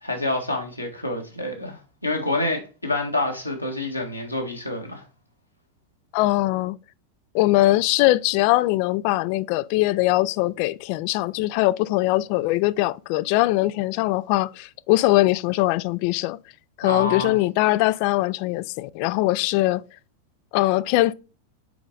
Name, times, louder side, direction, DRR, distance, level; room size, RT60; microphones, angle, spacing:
voice 1, 0.0-5.0 16.9-17.4, left 2 dB, 85° left, 1.7 m, -27 dB
voice 2, 6.1-6.8 7.3-16.4 16.8-19.8 20.5-21.1, left 18 dB, 45° left, 0.3 m, -21 dB
5.9 x 4.9 x 3.9 m
figure-of-eight pair, 90°, 0 cm